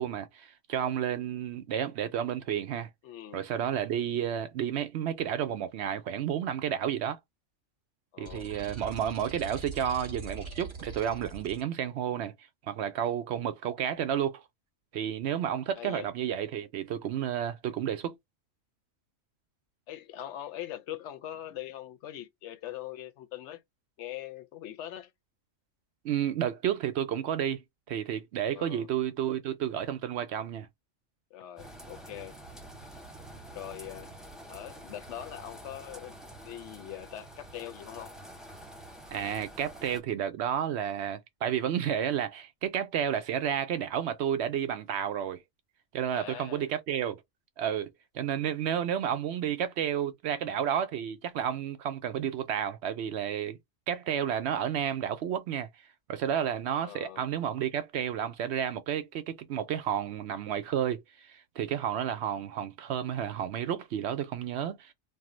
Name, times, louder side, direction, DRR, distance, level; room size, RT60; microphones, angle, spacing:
voice 1, 0.0-2.9 3.3-7.2 8.2-12.3 12.7-14.4 14.9-18.2 26.0-30.7 39.1-45.4 45.9-47.2 47.6-53.6 53.9-55.7 56.1-64.9, right 9 dB, 70° right, 0.8 m, -31 dB
voice 2, 3.0-3.5 8.1-8.5 15.8-16.1 19.9-23.6 24.0-25.1 28.5-28.9 31.3-32.4 33.5-34.1 34.5-36.2 36.4-38.1 46.1-46.7 56.8-57.2, left 12 dB, 70° left, 0.8 m, -42 dB
sound 1, 8.2-11.6, right 4 dB, 30° right, 0.7 m, -42 dB
sound 2, 31.6-40.0, right 1 dB, ahead, 0.8 m, -47 dB
2.6 x 2.0 x 3.7 m
omnidirectional pair, 1.3 m